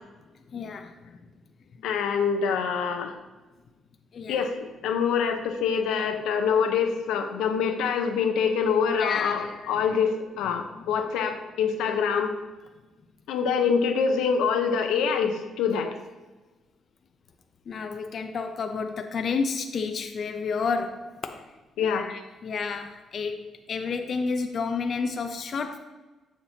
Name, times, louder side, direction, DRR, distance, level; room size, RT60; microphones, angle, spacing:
voice 1, 0.5-1.2 4.1-4.5 9.0-9.4 10.8-10.9 15.7-15.9 17.7-25.8, left 5 dB, 55° left, 5 dB, 0.5 m, -31 dB
voice 2, 1.8-3.1 4.3-12.3 13.3-15.9 21.8-22.1, left 6 dB, 90° left, 5 dB, 0.8 m, -25 dB
7.4 x 7.0 x 2.8 m, 1.1 s
cardioid pair, 90°, 0 cm